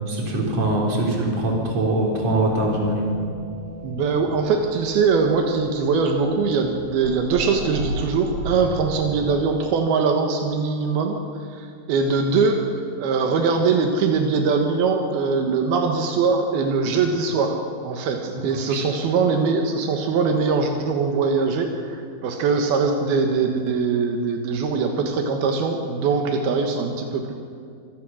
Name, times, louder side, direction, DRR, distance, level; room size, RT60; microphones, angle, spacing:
voice 1, 0.1-3.1 18.7-18.8, right 1 dB, 45° right, -1 dB, 4.6 m, -22 dB
sound 1, 2.5-9.0, right 2 dB, 70° right, 3.9 m, -35 dB
voice 2, 3.8-11.2 11.5-27.3, right 4 dB, 85° right, 3 dB, 3.3 m, -22 dB
25.5 x 17.0 x 6.3 m, 2.2 s
omnidirectional pair, 4.3 m